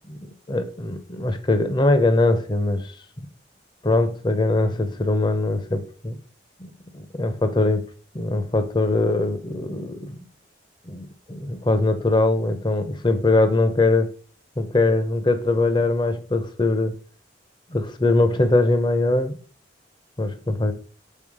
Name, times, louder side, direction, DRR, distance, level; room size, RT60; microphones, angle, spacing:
voice 1, 0.5-2.8 3.8-6.2 6.6-6.7 6.9-7.8 8.1-10.2 10.9-14.1 14.6-16.9 17.7-19.4 20.2-20.7, left 2 dB, 25° left, 0.7 m, -21 dB
5.6 x 4.1 x 4.8 m
head